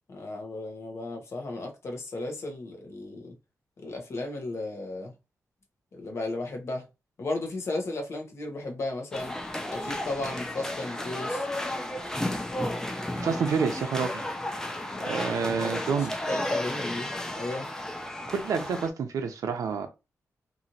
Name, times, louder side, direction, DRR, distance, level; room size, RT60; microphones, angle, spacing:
voice 1, 0.1-3.3 3.8-5.1 5.9-6.8 7.2-9.4 9.7-11.4 14.9-15.4 15.6-16.0 16.3-17.1 17.4-17.7, left 2 dB, 50° left, 0.9 m, -35 dB
sound 1, 9.1-18.9, left 1 dB, 10° left, 0.4 m, -33 dB
voice 2, 13.2-14.2 15.1-16.1 18.3-19.9, right 6 dB, 85° right, 0.5 m, -28 dB
2.9 x 2.5 x 2.6 m
wide cardioid pair, 135°, 6 cm